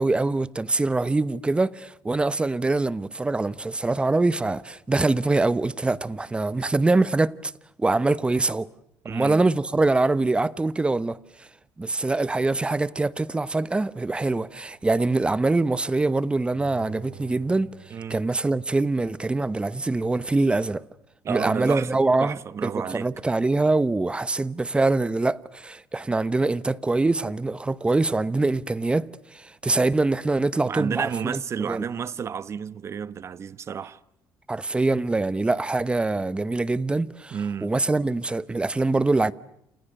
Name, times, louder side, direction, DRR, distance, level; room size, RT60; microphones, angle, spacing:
voice 1, 0.0-7.5 7.8-8.7 9.0-11.5 11.8-17.7 18.1-20.8 21.3-31.1 31.7-31.9 34.5-39.3, right 2 dB, 15° right, 1.0 m, -24 dB
voice 2, 9.0-9.4 17.9-18.2 21.2-23.1 30.6-34.0 37.3-37.7, right 7 dB, 40° right, 1.2 m, -31 dB
Bowed string instrument, 16.5-19.6 20.0-20.1, right 11 dB, 60° right, 7.0 m, -48 dB
29.5 x 29.0 x 6.6 m
cardioid pair, 120°, 7 cm